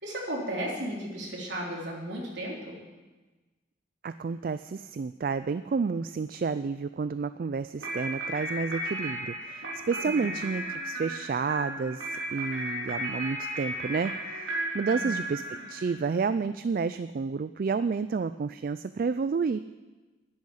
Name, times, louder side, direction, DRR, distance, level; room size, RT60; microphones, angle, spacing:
voice 1, 0.0-2.8 10.0-10.4 14.9-15.1, right 1 dB, 65° right, -3 dB, 3.7 m, -35 dB
voice 2, 4.0-19.6, right 5 dB, 45° right, 13 dB, 0.3 m, -30 dB
sound 1, 7.8-16.1, right 1 dB, 85° right, 3.8 m, -35 dB
10.5 x 8.5 x 9.9 m, 1.2 s
head